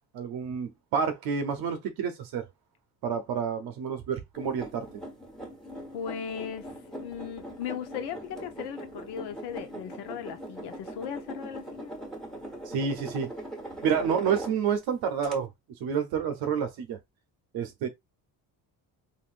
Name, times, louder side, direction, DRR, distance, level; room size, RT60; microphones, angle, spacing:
voice 1, 0.1-2.5 3.0-4.9 12.7-13.3 13.8-15.5 15.8-17.0 17.5-17.9, right 7 dB, 65° right, 0.7 m, -29 dB
sound 1, 4.3-14.8 15.2-15.3, right 1 dB, ahead, 1.2 m, -41 dB
voice 2, 5.9-11.9, left 7 dB, 75° left, 0.9 m, -37 dB
3.6 x 2.6 x 2.4 m
cardioid pair, 110°, 40 cm